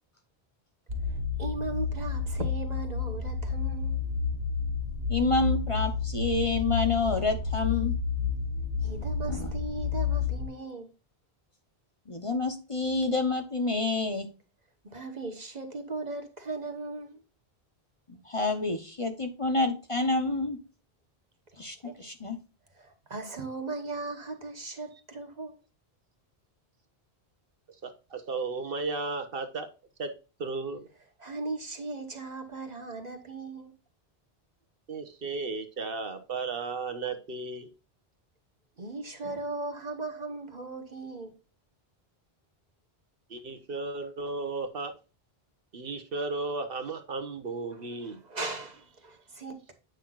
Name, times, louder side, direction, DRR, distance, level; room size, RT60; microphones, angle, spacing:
sound 1, 0.9-10.5, left 5 dB, 80° right, 1.7 m, -30 dB
voice 1, 1.0-4.0 8.8-10.9 14.8-17.2 21.6-22.1 22.7-25.6 31.2-33.7 38.8-41.3 47.7-49.7, right 3 dB, 40° right, 1.5 m, -38 dB
voice 2, 5.1-7.9 9.3-9.5 12.1-14.3 18.1-20.6 21.6-22.4, left 3 dB, 30° left, 1.0 m, -28 dB
voice 3, 27.8-29.7 30.0-30.1 30.4-30.9 34.9-37.7 43.3-44.9 45.7-48.2, right 3 dB, 65° right, 1.2 m, -34 dB
9.2 x 5.9 x 2.5 m
omnidirectional pair, 1.0 m